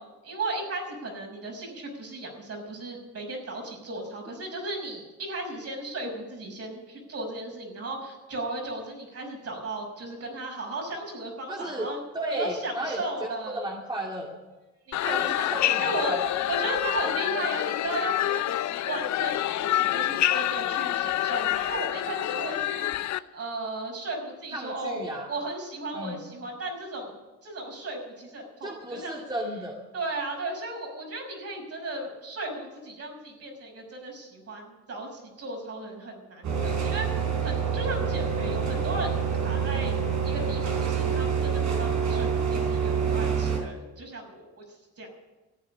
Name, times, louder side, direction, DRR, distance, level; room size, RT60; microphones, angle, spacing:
voice 1, 0.0-12.0 12.3-13.7 14.9-27.2 27.4-29.2 29.9-37.1 37.4-39.9 40.2-44.6 45.0-45.1, right 2 dB, 55° right, 1 dB, 5.9 m, -35 dB
voice 2, 11.5-13.0 13.4-14.4 15.1-16.3 24.5-25.3 25.9-26.2 28.6-29.8 39.7-39.8, right 1 dB, 15° right, -2 dB, 2.4 m, -34 dB
sound 1, 14.9-23.2, left 13 dB, 65° left, 0.6 m, -27 dB
sound 2, 36.4-43.6, right 7 dB, 70° right, 4.3 m, -27 dB
14.0 x 8.9 x 9.7 m, 1.1 s
cardioid pair, 90°, 30 cm